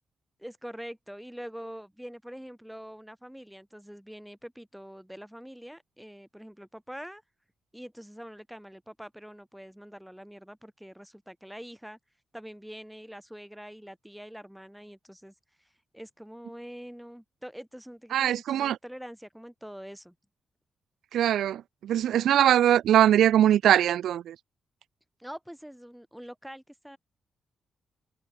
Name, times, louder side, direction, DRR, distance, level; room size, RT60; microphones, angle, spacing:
voice 1, 0.4-7.2 7.7-12.0 12.3-20.2 25.2-27.0, equal, ahead, 3.7 m, -44 dB
voice 2, 18.1-18.8 21.1-24.4, right 11 dB, 90° right, 0.9 m, -22 dB
wide cardioid pair, 145°, 0 cm